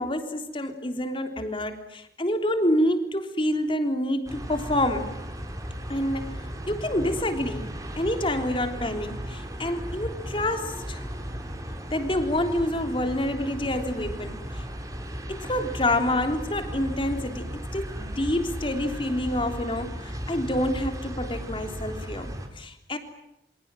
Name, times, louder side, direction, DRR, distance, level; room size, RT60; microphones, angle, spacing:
voice 1, 0.0-5.1 5.9-6.3 6.7-7.7 8.0-11.0 11.9-14.6 15.3-23.0, left 1 dB, 30° left, 6 dB, 3.5 m, -27 dB
sound 1, 4.3-22.5, equal, 20° right, 4.6 m, -36 dB
29.0 x 26.5 x 7.7 m, 0.83 s
head